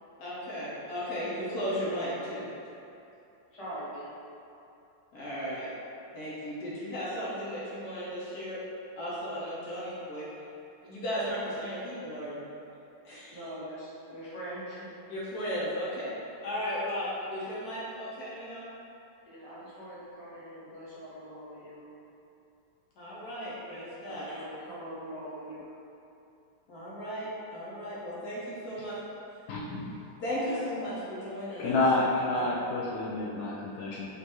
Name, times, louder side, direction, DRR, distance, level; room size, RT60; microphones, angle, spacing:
voice 1, 0.2-2.5 5.1-5.7 6.1-8.6 9.0-10.3 10.8-12.4 13.0-13.4 15.1-16.1 16.4-18.6 23.0-24.4 26.7-29.0 30.2-31.8 32.3-32.5, equal, 55° left, -8 dB, 1.2 m, -35 dB
voice 2, 3.5-4.1 13.3-14.9 19.3-21.9 24.0-25.7 30.4-30.6, right 1 dB, 20° left, -11 dB, 0.9 m, -42 dB
voice 3, 29.5-30.0 31.6-34.1, left 2 dB, 85° left, -6 dB, 0.7 m, -29 dB
5.4 x 2.7 x 2.9 m, 2.8 s
omnidirectional pair, 2.2 m